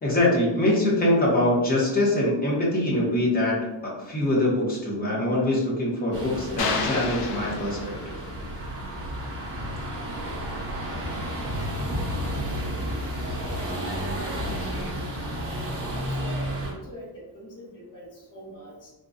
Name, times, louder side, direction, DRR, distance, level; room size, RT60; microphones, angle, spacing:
voice 1, 0.0-3.6 3.8-8.2, left 1 dB, 20° left, -5 dB, 0.9 m, -23 dB
sound 1, 6.1-16.7, equal, 30° right, 0.8 m, -31 dB
sound 2, 6.6-8.3, left 4 dB, 60° left, 0.6 m, -30 dB
voice 2, 14.3-14.9 15.9-18.9, equal, 45° left, -7 dB, 1.3 m, -43 dB
3.7 x 2.3 x 2.6 m, 1.0 s
cardioid pair, 165°, 45 cm